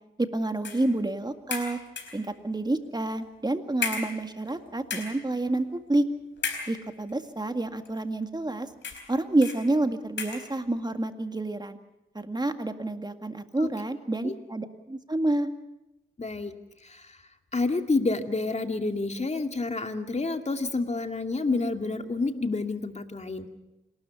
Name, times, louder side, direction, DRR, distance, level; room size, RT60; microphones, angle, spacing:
voice 1, 0.2-1.8 2.1-6.1 6.7-8.7 9.1-11.8 12.1-15.5, right 2 dB, 20° right, 7 dB, 2.0 m, -28 dB
sound 1, 0.6-0.9 1.5-2.3 3.1-3.2 3.8-4.6 4.8-5.3 6.4-7.1 7.9-8.0 8.8-9.1 9.4-9.7 10.2-10.5, left 5 dB, 65° left, 4.3 m, -34 dB
voice 2, 16.2-16.5 16.8-17.1 17.5-23.5, left 3 dB, 35° left, 6 dB, 2.3 m, -29 dB
27.0 x 12.5 x 8.3 m, 0.96 s
supercardioid pair, 50°, 21 cm